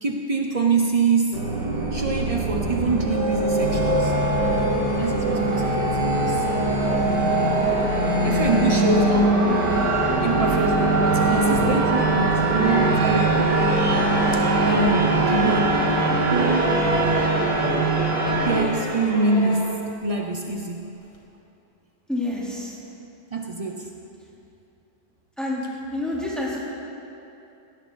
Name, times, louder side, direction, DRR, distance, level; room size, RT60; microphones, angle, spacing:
voice 1, 0.0-1.5 1.9-4.1 5.0-6.4 8.2-9.5 10.2-14.0 14.3-15.8 16.3-16.8 18.2-20.9 23.3-23.9 26.1-26.2, right 3 dB, 55° right, 2 dB, 0.4 m, -25 dB
sound 1, 1.3-18.6, right 2 dB, 75° right, 2.8 m, -21 dB
sound 2, 16.3-19.8 21.1-21.2, equal, 20° left, 2.0 m, -29 dB
voice 2, 22.1-22.8 25.4-25.6 25.9-26.6, left 2 dB, ahead, -7 dB, 3.7 m, -28 dB
18.0 x 17.5 x 4.1 m, 2.8 s
omnidirectional pair, 1.9 m